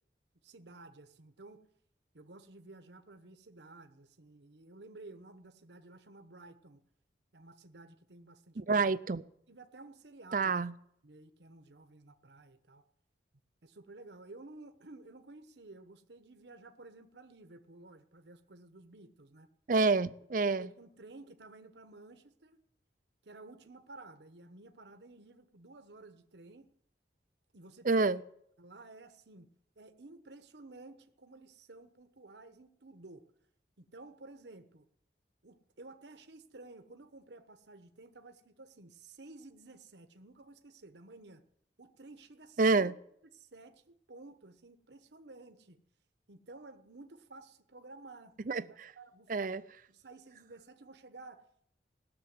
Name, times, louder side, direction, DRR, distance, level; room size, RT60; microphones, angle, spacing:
voice 1, 0.4-1.6 2.1-6.8 7.3-8.9 9.5-10.6 11.0-12.8 13.6-19.5 20.5-22.6 23.2-26.7 27.5-28.2 28.6-33.3 33.8-34.8 35.4-41.4 41.8-42.9 43.3-45.8 46.3-49.3 49.9-51.7, right 2 dB, 70° right, 1.1 m, -53 dB
voice 2, 8.6-9.2 10.3-10.7 19.7-20.7 27.8-28.2 42.6-42.9 48.5-48.9 49.3-49.6, right 3 dB, 45° right, 0.5 m, -28 dB
17.5 x 7.0 x 9.6 m
head